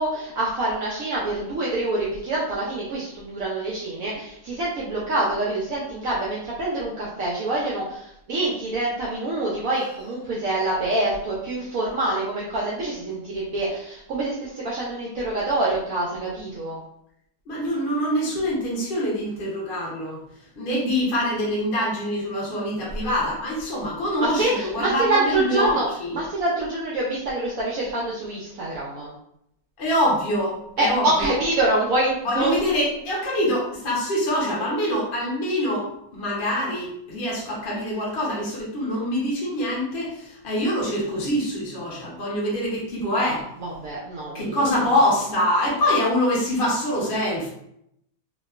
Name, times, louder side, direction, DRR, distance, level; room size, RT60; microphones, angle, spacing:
voice 1, 0.0-16.8 24.2-25.8 26.1-29.1 30.8-32.5 43.6-44.8, right 2 dB, 75° right, -5 dB, 0.7 m, -26 dB
voice 2, 17.5-20.2 20.6-26.2 29.8-31.4 32.2-43.5 44.3-47.5, left 1 dB, 50° left, -5 dB, 0.6 m, -25 dB
2.9 x 2.3 x 2.3 m, 0.75 s
omnidirectional pair, 2.0 m